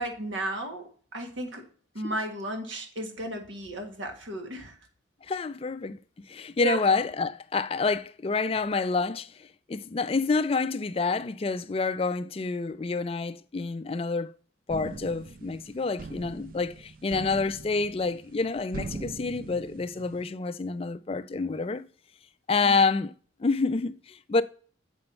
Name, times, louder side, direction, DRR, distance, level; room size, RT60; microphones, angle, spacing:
voice 1, 0.0-1.7 1.9-4.8 6.6-6.9 22.6-22.9, right 2 dB, 80° right, 1.7 m, -34 dB
voice 2, 5.2-6.0 6.3-14.3 14.7-21.9 22.5-23.1 23.4-24.4, left 4 dB, 30° left, 0.4 m, -28 dB
sound 1, 14.7-20.3, right 3 dB, 45° right, 0.4 m, -41 dB
7.8 x 5.5 x 4.3 m
head